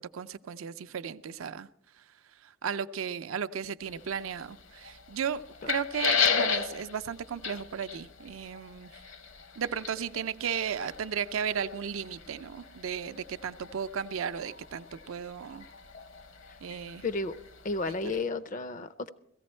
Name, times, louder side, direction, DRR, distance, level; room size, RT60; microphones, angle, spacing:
voice 1, 0.0-1.7 2.0-2.1 2.4-9.0 9.6-15.7 16.6-17.0 17.8-17.9, right 7 dB, 75° right, 12 dB, 0.4 m, -35 dB
sound 1, 3.8-18.2, left 6 dB, 65° left, 0.8 m, -36 dB
voice 2, 17.0-17.4 17.6-19.1, left 3 dB, 40° left, 14 dB, 0.4 m, -32 dB
16.5 x 14.5 x 4.3 m, 0.77 s
head